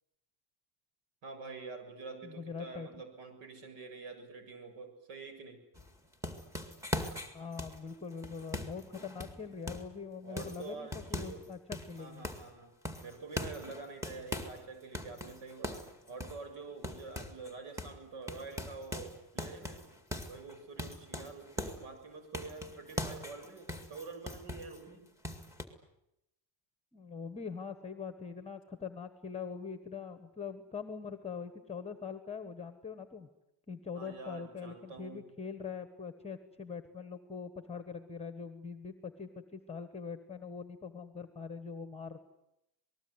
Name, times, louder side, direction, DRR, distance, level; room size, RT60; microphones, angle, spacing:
voice 1, 1.2-5.6 10.2-11.4 12.0-12.7 13.0-19.8 20.3-25.0 34.0-35.2, right 4 dB, 80° right, 7 dB, 7.3 m, -47 dB
voice 2, 2.2-3.0 7.3-12.3 26.9-33.3 33.7-42.2, left 6 dB, 15° left, 10 dB, 1.3 m, -43 dB
sound 1, 5.8-10.0 10.4-11.5 11.7-12.5 12.9-14.6 14.9-17.5 17.8-18.0 18.3-21.9 22.3-24.8 25.2-25.7, left 1 dB, 5° right, 2.1 m, -41 dB
27.0 x 20.0 x 9.6 m, 0.87 s
cardioid pair, 160°, 49 cm